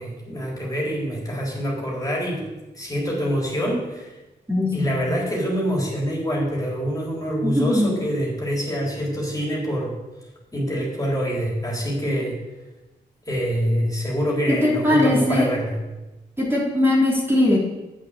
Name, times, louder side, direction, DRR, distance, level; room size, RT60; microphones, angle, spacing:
voice 1, 0.0-2.5 2.7-4.1 4.7-9.9 10.5-12.4 13.3-15.8, equal, 20° left, -3 dB, 3.9 m, -25 dB
voice 2, 4.5-4.9 7.4-7.9 14.6-15.5 16.4-17.6, left 1 dB, 10° right, -5 dB, 3.7 m, -20 dB
8.4 x 6.4 x 6.9 m, 1.1 s
supercardioid pair, 50°, 18 cm